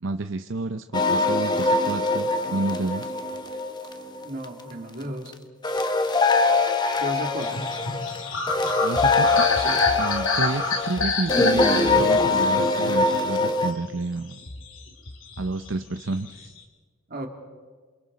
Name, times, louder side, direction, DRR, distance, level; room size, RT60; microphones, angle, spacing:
voice 1, 0.0-3.1 8.8-9.5 10.0-14.4 15.4-16.5, right 3 dB, 70° right, 8 dB, 0.7 m, -30 dB
sound 1, 0.9-4.4 5.6-13.7, left 3 dB, 20° left, 1.1 m, -23 dB
voice 2, 4.2-5.3 7.0-7.7 9.6-9.8 17.1-17.3, right 1 dB, 50° right, 2 dB, 2.8 m, -34 dB
sound 2, 7.4-13.9 14.3-15.7 16.0-16.6, left 3 dB, 80° left, 2.6 m, -28 dB
28.0 x 27.5 x 4.1 m, 1.5 s
head